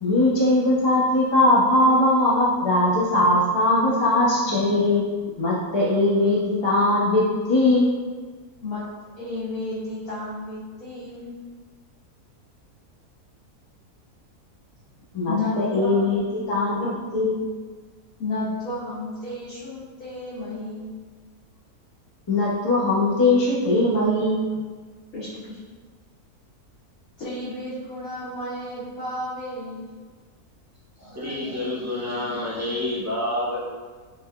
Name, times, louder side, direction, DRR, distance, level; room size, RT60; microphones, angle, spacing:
voice 1, 0.0-5.0 5.4-7.9 15.1-16.2 16.5-17.4 22.3-24.5, left 1 dB, 25° left, -7 dB, 0.6 m, -20 dB
voice 2, 9.2-11.3 15.3-16.4 18.2-20.9 22.8-22.9 25.1-25.6 27.2-29.8, left 2 dB, 60° left, -11 dB, 1.3 m, -32 dB
voice 3, 31.0-33.6, left 1 dB, 25° right, -9 dB, 0.3 m, -28 dB
4.1 x 3.3 x 2.2 m, 1.5 s
omnidirectional pair, 1.7 m